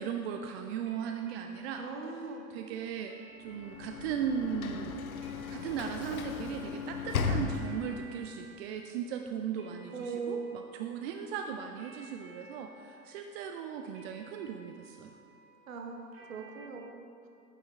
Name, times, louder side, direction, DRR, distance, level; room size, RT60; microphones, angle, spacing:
voice 1, 0.0-1.8 2.5-3.1 3.4-5.1 5.5-15.1, right 7 dB, 45° right, 5 dB, 0.6 m, -37 dB
sound 1, 0.9-16.7, right 2 dB, 30° right, 1.5 m, -57 dB
voice 2, 1.8-2.5 9.9-10.5 15.7-17.3, right 5 dB, 65° right, 3 dB, 1.1 m, -40 dB
Sliding door / Slam, 3.5-8.2, left 5 dB, 75° left, 0.7 m, -36 dB
9.3 x 8.7 x 3.3 m, 2.7 s
figure-of-eight pair, 85°, 43 cm